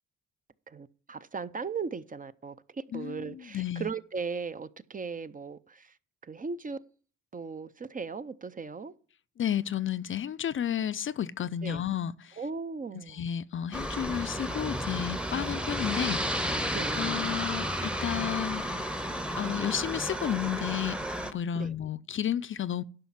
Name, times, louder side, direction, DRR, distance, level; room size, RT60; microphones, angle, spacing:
voice 1, 0.7-2.5 2.9-5.9 6.3-6.8 7.3-8.9 11.6-11.8 12.4-13.2 16.7-16.9 21.5-21.7, right 5 dB, 25° right, 0.6 m, -37 dB
voice 2, 2.9-3.9 9.4-12.4 12.9-16.5 16.9-18.7 19.4-21.0 21.2-22.8, left 10 dB, 45° left, 0.5 m, -32 dB
Aircraft, 13.7-21.3, equal, 5° right, 0.9 m, -32 dB
11.5 x 5.7 x 7.3 m
cardioid pair, 90°, 30 cm